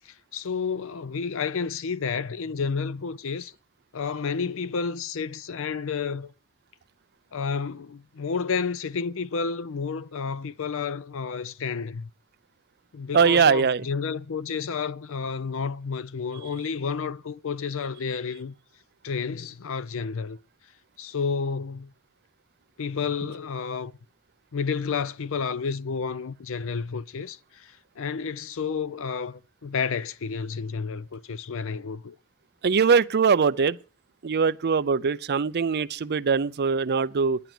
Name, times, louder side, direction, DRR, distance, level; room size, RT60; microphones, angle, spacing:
voice 1, 0.0-3.5 3.9-6.3 7.3-12.1 12.9-18.5 19.0-20.4 21.0-21.9 22.8-23.9 24.5-32.1, left 5 dB, 65° left, 0.5 m, -31 dB
voice 2, 13.1-13.9 32.6-33.8 34.2-37.4, right 5 dB, 50° right, 0.5 m, -22 dB
11.0 x 10.5 x 6.0 m
head